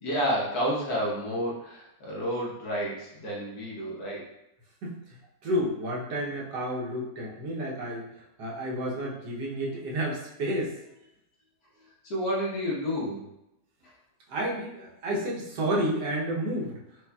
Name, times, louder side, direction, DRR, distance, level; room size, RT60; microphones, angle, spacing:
voice 1, 0.0-4.3 12.0-13.2, equal, 65° left, -5 dB, 1.4 m, -30 dB
voice 2, 5.4-8.1 8.4-10.8 14.3-16.7, right 1 dB, 75° right, -4 dB, 1.4 m, -30 dB
4.8 x 2.7 x 2.2 m, 0.87 s
omnidirectional pair, 1.9 m